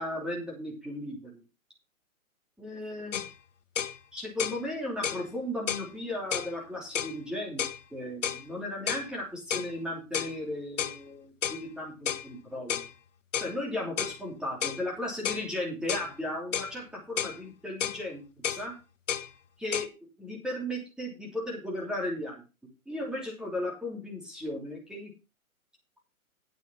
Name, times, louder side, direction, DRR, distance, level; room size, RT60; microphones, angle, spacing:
voice 1, 0.0-1.4 2.6-3.2 4.1-7.6 7.9-12.8 13.4-18.2 18.5-18.7 19.6-19.9 20.2-22.4 22.9-25.1, left 1 dB, ahead, -3 dB, 3.1 m, -35 dB
sound 1, 3.1-3.3 3.7-4.0 4.4-4.6 5.0-5.2 5.7-5.9 6.3-6.5 6.9-7.2 7.6-7.8 8.2-8.4 8.9-9.1 9.5-9.7 10.1-10.3 10.8-11.0 11.4-11.6 12.0-12.3 12.7-12.9 13.3-13.5 14.0-14.2 14.6-14.8 15.2-15.5 15.9-16.1 16.5-16.7 17.2-17.4 17.8-18.0 18.4-18.6 19.1-19.3 19.7-19.9, left 8 dB, 60° left, 1.1 m, -31 dB
9.3 x 7.8 x 5.7 m, 0.29 s
hypercardioid pair, 135°, 42 cm